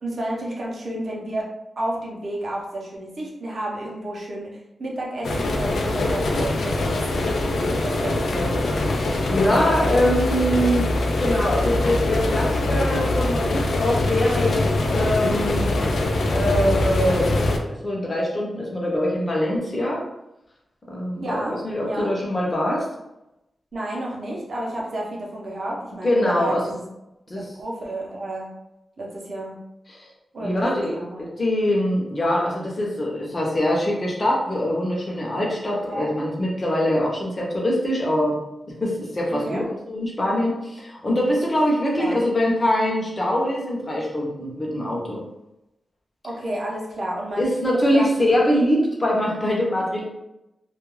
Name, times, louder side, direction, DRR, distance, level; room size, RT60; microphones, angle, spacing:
voice 1, 0.0-1.5 1.8-7.1 7.5-8.5 21.2-21.6 21.8-22.1 23.7-26.9 27.3-28.5 29.0-29.5 30.3-31.3 35.9-36.1 39.3-39.7 42.0-42.2 46.2-48.1, right 1 dB, 45° right, -3 dB, 0.6 m, -31 dB
sound 1, 5.2-17.6, left 2 dB, 85° left, 0.4 m, -23 dB
voice 2, 8.9-10.9 11.2-14.6 14.9-15.7 16.3-17.4 17.7-20.0 20.9-22.9 26.0-26.6 27.3-27.4 29.9-30.1 30.4-30.9 31.2-38.4 38.8-45.2 47.4-50.0, left 1 dB, 25° left, -3 dB, 0.6 m, -23 dB
2.3 x 2.2 x 3.1 m, 0.90 s
wide cardioid pair, 160°, 0 cm